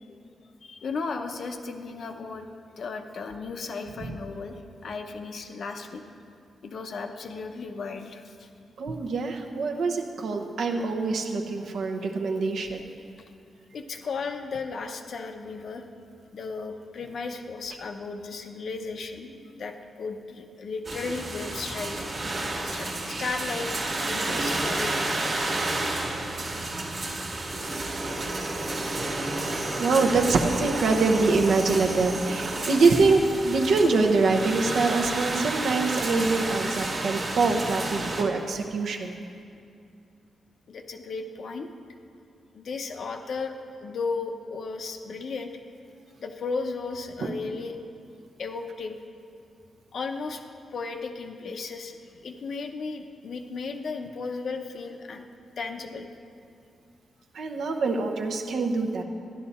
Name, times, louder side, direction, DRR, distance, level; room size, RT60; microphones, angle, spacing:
voice 1, 0.6-2.5 2.8-6.0 6.6-8.5 13.7-15.8 16.3-19.3 19.5-22.0 22.6-23.7 24.0-25.4 40.7-41.7 42.5-45.5 46.2-47.8 48.4-49.0 49.9-50.4 50.7-52.0 52.2-55.3 55.6-56.1, left 4 dB, 50° left, 6 dB, 0.7 m, -35 dB
voice 2, 8.8-12.8 29.8-39.2 47.2-47.3 57.3-59.0, right 3 dB, 65° right, 3 dB, 0.9 m, -24 dB
sound 1, 20.8-38.2, right 2 dB, 30° right, 1.4 m, -31 dB
12.0 x 11.0 x 4.2 m, 2.4 s
wide cardioid pair, 170°, 0 cm